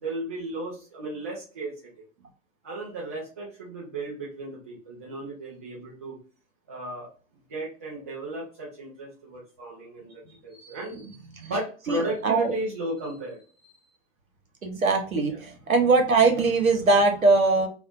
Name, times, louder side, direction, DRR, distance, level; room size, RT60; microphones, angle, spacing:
voice 1, 0.0-1.9 2.6-6.2 6.7-7.1 7.5-13.7 15.3-15.4, right 2 dB, 15° right, -7 dB, 0.3 m, -35 dB
voice 2, 14.6-17.7, right 3 dB, 80° right, 3 dB, 0.9 m, -21 dB
2.5 x 2.3 x 2.3 m, 0.39 s
figure-of-eight pair, 105°, 41 cm